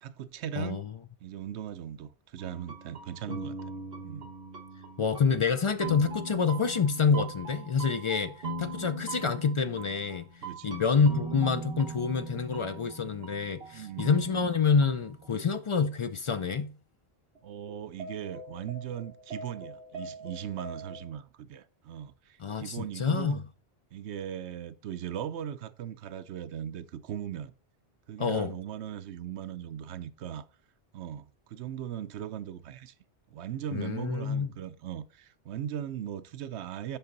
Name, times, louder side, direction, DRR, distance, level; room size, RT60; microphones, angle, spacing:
voice 1, 0.0-0.9 1.2-3.6 4.0-4.3 10.4-11.2 13.7-14.2 17.4-23.4 23.9-27.5 28.1-30.5 30.9-32.9 33.3-37.0, right 10 dB, 85° right, 0.9 m, -39 dB
voice 2, 0.6-0.9 5.0-10.3 10.6-16.7 22.4-23.4 28.2-28.5 33.7-34.5, left 5 dB, 50° left, 0.3 m, -27 dB
sound 1, 2.4-15.5 15.8-15.9 17.4-17.5 17.7-21.0, right 2 dB, 65° right, 1.5 m, -41 dB
8.1 x 5.5 x 3.9 m
omnidirectional pair, 1.1 m